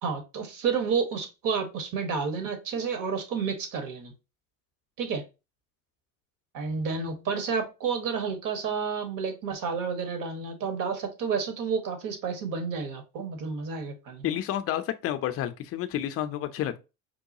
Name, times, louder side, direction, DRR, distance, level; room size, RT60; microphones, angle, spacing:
voice 1, 0.0-4.1 5.0-5.2 6.5-14.4, right 5 dB, 45° right, 1.3 m, -30 dB
voice 2, 14.2-16.8, left 11 dB, 35° left, 0.5 m, -30 dB
4.7 x 2.2 x 2.7 m
hypercardioid pair, 80°, 44 cm